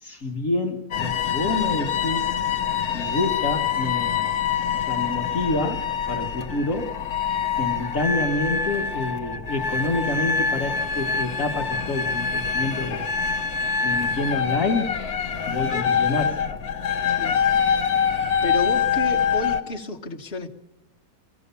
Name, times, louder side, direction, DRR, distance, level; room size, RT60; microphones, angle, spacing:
voice 1, 0.0-2.3 2.9-4.4 4.7-7.0 7.6-13.1 13.8-15.0 15.5-16.4, left 2 dB, 60° left, 1 dB, 1.8 m, -28 dB
sound 1, 0.9-19.6, left 7 dB, 75° left, 1.8 m, -25 dB
voice 2, 17.1-17.5 18.1-20.5, left 2 dB, 45° left, -1 dB, 1.9 m, -32 dB
23.5 x 16.5 x 6.9 m, 0.93 s
omnidirectional pair, 1.6 m